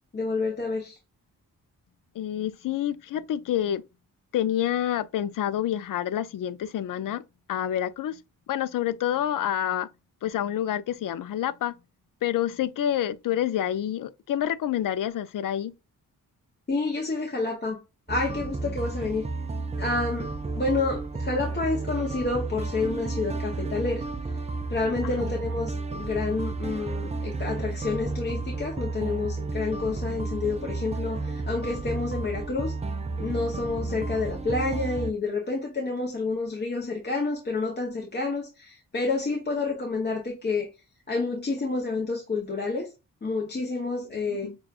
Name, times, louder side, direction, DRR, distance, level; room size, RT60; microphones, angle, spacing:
voice 1, 0.1-1.0 16.7-17.8 18.1-19.2 19.8-20.3 20.6-24.0 24.7-32.7 33.2-40.7 41.1-42.9 43.2-44.5, left 3 dB, 30° left, 0.8 m, -29 dB
voice 2, 2.2-3.8 4.3-7.2 7.5-8.2 8.5-9.9 10.2-11.7 12.2-15.7 25.0-25.1 44.2-44.6, left 11 dB, 65° left, 0.5 m, -28 dB
sound 1, 18.1-35.1, right 3 dB, 20° right, 0.4 m, -32 dB
6.1 x 2.3 x 2.3 m
wide cardioid pair, 125°, 36 cm